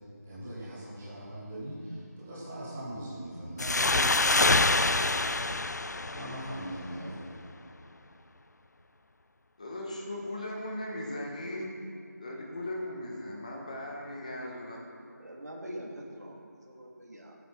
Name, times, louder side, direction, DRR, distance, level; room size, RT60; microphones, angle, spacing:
voice 1, 0.2-5.5 6.1-7.3, equal, 5° right, -8 dB, 0.7 m, -40 dB
sound 1, 3.6-7.0, left 2 dB, 70° left, 0.5 m, -26 dB
voice 2, 4.7-5.1 6.9-7.4 15.2-17.3, equal, 65° right, -2 dB, 3.1 m, -44 dB
voice 3, 9.6-11.8 12.2-14.8, left 1 dB, 25° left, -1 dB, 1.6 m, -38 dB
14.5 x 9.1 x 5.9 m, 2.5 s
figure-of-eight pair, 175°, 10 cm